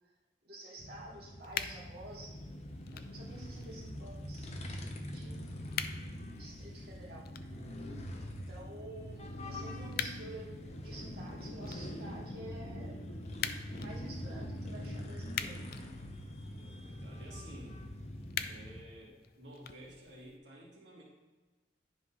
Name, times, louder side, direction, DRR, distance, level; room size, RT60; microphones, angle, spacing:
voice 1, 0.4-5.7 6.4-7.2 8.1-10.5 10.8-13.0 13.7-15.6, right 1 dB, 60° right, -6 dB, 2.4 m, -50 dB
sound 1, 0.8-18.8, equal, 40° left, 1.0 m, -44 dB
sound 2, 1.4-20.4, left 8 dB, 60° left, 0.5 m, -46 dB
voice 2, 16.5-17.8 18.4-21.0, right 1 dB, 90° right, -5 dB, 2.4 m, -52 dB
10.5 x 4.0 x 5.7 m, 1.2 s
head